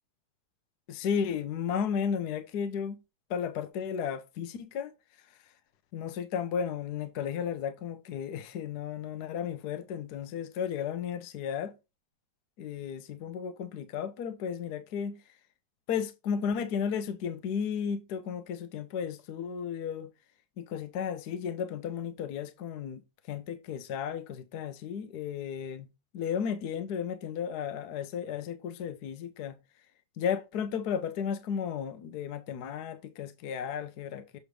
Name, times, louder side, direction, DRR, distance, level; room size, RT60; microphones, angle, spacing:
voice 1, 0.9-2.9 3.3-5.5 5.9-11.7 12.6-15.2 15.9-20.1 20.6-25.9 26.1-29.6 30.2-34.4, left 7 dB, 65° left, 1.1 m, -34 dB
7.9 x 3.2 x 5.1 m
omnidirectional pair, 2.1 m